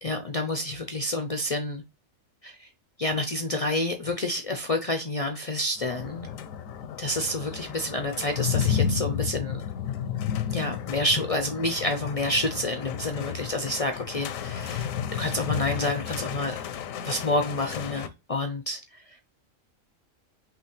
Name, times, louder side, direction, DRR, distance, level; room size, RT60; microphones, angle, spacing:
voice 1, 0.0-1.8 2.4-2.7 3.0-6.3 7.0-9.6 10.5-14.9 15.2-16.6 17.0-19.0, left 1 dB, 65° left, 0.3 m, -29 dB
sound 1, 5.8-18.1, left 8 dB, 90° left, 1.0 m, -32 dB
5.9 x 2.9 x 3.0 m
omnidirectional pair, 1.4 m